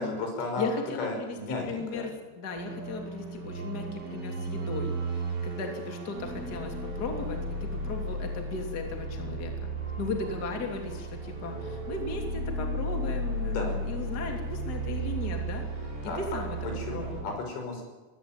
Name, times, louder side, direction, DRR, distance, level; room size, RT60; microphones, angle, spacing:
voice 1, 0.0-0.7 1.0-2.1 13.5-13.8 16.0-16.2 16.7-17.8, left 3 dB, 75° left, 3 dB, 8.0 m, -34 dB
voice 2, 0.6-9.7 10.0-15.6 16.0-16.6 16.9-17.4, left 3 dB, 25° left, 3 dB, 2.6 m, -36 dB
sound 1, 2.5-17.2, right 2 dB, 25° right, 3.8 m, -34 dB
21.0 x 17.0 x 9.0 m, 1.2 s
omnidirectional pair, 5.7 m